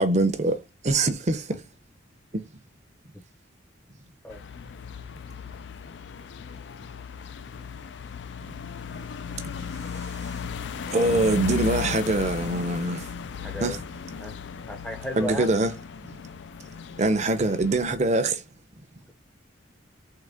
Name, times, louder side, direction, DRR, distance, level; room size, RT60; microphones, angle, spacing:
voice 1, 0.0-1.6 2.3-2.4 9.6-9.7 10.9-13.1 13.6-13.8 15.2-15.7 17.0-18.4, right 2 dB, 35° right, 0.7 m, -24 dB
sound 1, 4.3-17.9, left 6 dB, 60° left, 0.4 m, -36 dB
voice 2, 13.4-13.8 14.2-14.4 14.7-15.5, equal, 5° left, 0.7 m, -34 dB
3.8 x 3.5 x 3.5 m
head